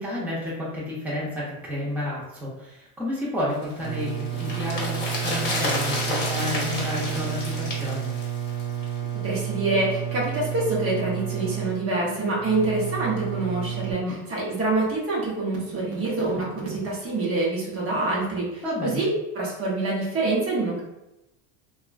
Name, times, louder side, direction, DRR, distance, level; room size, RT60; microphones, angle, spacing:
voice 1, 0.0-8.1 14.0-14.1 18.6-19.0, left 1 dB, 5° right, -8 dB, 0.8 m, -31 dB
sound 1, 3.6-9.0 9.3-9.4, left 2 dB, 25° left, 1.0 m, -31 dB
sound 2, 3.8-13.9, right 10 dB, 55° right, 1.2 m, -31 dB
voice 2, 9.2-14.0 14.3-20.8, right 2 dB, 35° right, -4 dB, 1.0 m, -26 dB
2.8 x 2.4 x 2.5 m, 0.93 s
supercardioid pair, 105°, 40 cm